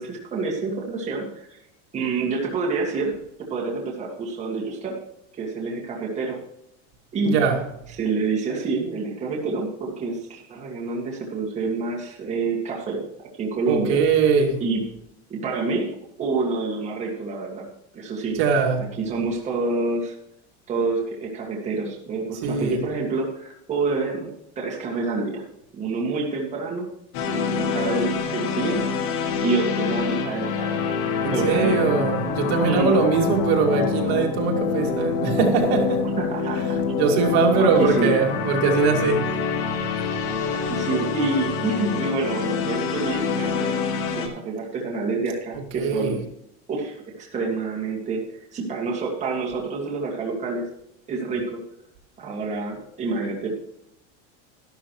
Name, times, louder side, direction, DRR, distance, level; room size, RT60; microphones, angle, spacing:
voice 1, 0.0-1.6 1.9-5.0 5.4-6.4 7.1-7.4 7.9-13.0 13.4-14.0 14.6-14.8 15.3-17.7 17.9-18.4 18.8-20.2 20.7-24.3 24.6-25.4 25.7-26.9 27.3-29.0 29.4-30.9 31.3-31.8 32.6-33.0 36.2-36.8 37.5-38.1 40.5-43.7 44.1-46.2 46.7-48.2 48.5-50.7 51.1-51.6 52.2-53.5, right 3 dB, 20° right, 2.0 m, -27 dB
voice 2, 7.2-7.6 13.7-14.6 18.3-18.9 22.4-22.8 31.2-36.1 36.9-39.4 45.7-46.2, right 5 dB, 60° right, 2.5 m, -21 dB
sound 1, 27.1-44.3, left 5 dB, 65° left, 2.2 m, -26 dB
12.5 x 12.0 x 3.1 m
cardioid pair, 175°, 35 cm